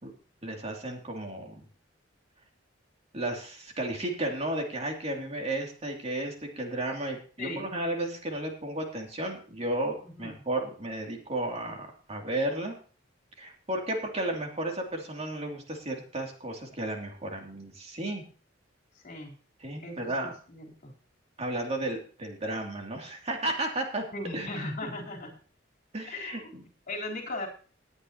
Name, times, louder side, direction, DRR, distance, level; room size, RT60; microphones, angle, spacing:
voice 1, 0.4-1.6 3.1-12.7 13.4-18.2 19.6-20.3 21.4-24.0 24.3-24.6 25.9-26.6, right 1 dB, 35° right, 1 dB, 2.7 m, -33 dB
voice 2, 10.0-10.4 19.0-19.3 19.8-20.9 24.1-25.4 26.1-27.5, left 2 dB, 50° left, -2 dB, 3.8 m, -38 dB
19.0 x 9.7 x 2.9 m, 0.39 s
head